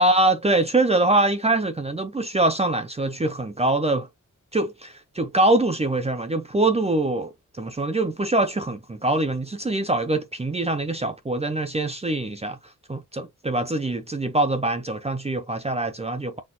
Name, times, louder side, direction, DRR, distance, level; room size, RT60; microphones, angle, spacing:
voice 1, 0.0-4.1 4.5-7.3 7.6-12.6 12.9-16.4, right 2 dB, 20° right, 0.5 m, -23 dB
4.3 x 2.4 x 3.9 m
wide cardioid pair, 140°, 31 cm